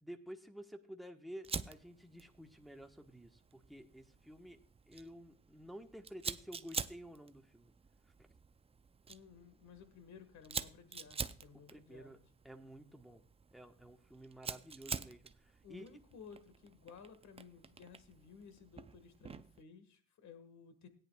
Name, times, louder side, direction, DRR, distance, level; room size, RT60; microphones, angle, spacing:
voice 1, 0.0-4.6 4.9-7.7 8.2-8.3 11.5-13.2 13.5-15.8, equal, ahead, 4 dB, 1.2 m, -52 dB
Fire, 1.4-19.6, right 5 dB, 20° right, 0.4 m, -47 dB
voice 2, 9.1-12.2 15.6-20.9, left 6 dB, 65° left, 10 dB, 1.7 m, -56 dB
17.0 x 9.9 x 2.3 m, 0.43 s
cardioid pair, 90°, 30 cm